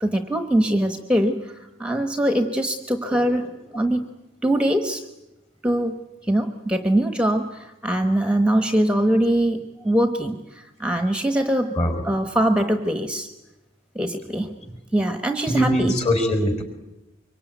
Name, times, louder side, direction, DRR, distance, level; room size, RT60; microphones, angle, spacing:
voice 1, 0.0-4.1 4.4-5.0 5.6-11.7 12.0-13.3 13.9-14.5 14.9-15.9, right 1 dB, 5° right, 7 dB, 1.1 m, -22 dB
voice 2, 15.5-16.6, equal, 35° left, 6 dB, 4.6 m, -21 dB
25.0 x 23.5 x 9.3 m, 0.95 s
head